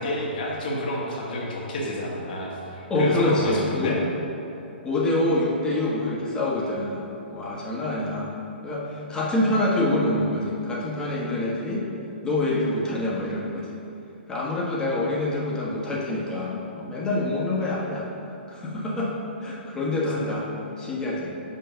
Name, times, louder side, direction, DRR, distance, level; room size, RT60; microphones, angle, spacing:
voice 1, 0.0-4.0, left 1 dB, 55° left, -3 dB, 1.5 m, -29 dB
voice 2, 2.9-4.0 4.8-8.3 8.6-11.8 12.2-13.8 14.3-18.1 18.5-19.1 19.4-20.5 20.8-21.3, left 1 dB, 10° left, -5 dB, 1.3 m, -26 dB
5.8 x 4.4 x 5.7 m, 2.8 s
figure-of-eight pair, 120°, 6 cm